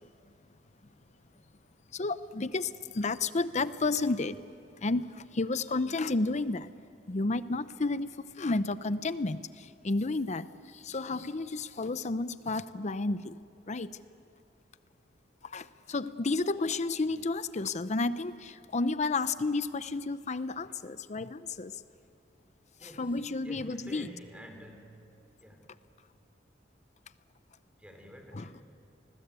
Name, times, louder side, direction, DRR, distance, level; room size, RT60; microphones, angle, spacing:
voice 1, 2.0-2.7 2.9-4.4 4.8-5.1 5.4-6.7 7.1-8.1 8.4-9.4 9.8-10.4 10.9-13.4 13.7-13.9 15.5-21.7 22.8-24.1 28.3-28.5, left 3 dB, 40° left, 14 dB, 0.7 m, -31 dB
voice 2, 22.8-23.1 23.4-25.1 25.4-25.7 27.8-28.6, equal, 5° right, 3 dB, 3.4 m, -49 dB
27.5 x 20.0 x 8.3 m, 2.7 s
head